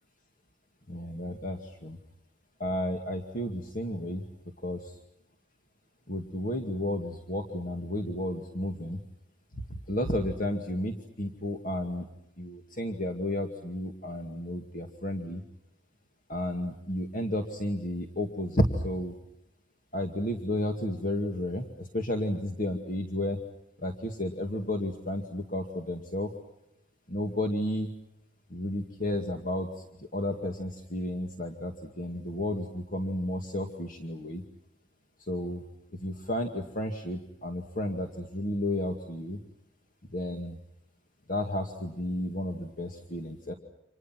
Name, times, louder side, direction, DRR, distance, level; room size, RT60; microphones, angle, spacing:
voice 1, 0.9-2.0 2.6-4.3 4.6-4.9 6.1-9.0 9.9-12.1 12.4-15.4 16.3-19.1 19.9-23.4 23.8-26.3 27.1-27.9 28.5-29.7 30.0-34.4 35.3-35.6 36.0-39.4 40.1-40.6 41.3-43.5, left 1 dB, 50° left, 3 dB, 2.3 m, -32 dB
30.0 x 27.5 x 6.0 m, 0.85 s
head